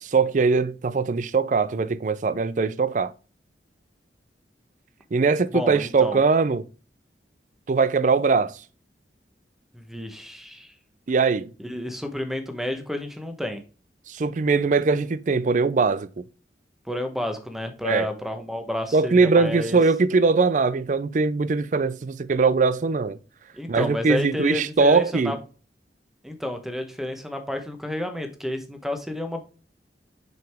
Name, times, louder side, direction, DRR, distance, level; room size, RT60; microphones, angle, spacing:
voice 1, 0.0-3.1 5.1-6.6 7.7-8.6 11.1-11.5 14.1-16.2 17.8-18.1 18.9-23.2 23.7-25.4, right 4 dB, 45° right, 0.4 m, -21 dB
voice 2, 5.5-6.2 9.7-10.7 11.6-13.6 16.9-19.8 23.5-25.4 26.2-29.4, left 1 dB, ahead, 1.0 m, -30 dB
6.2 x 4.9 x 3.5 m
head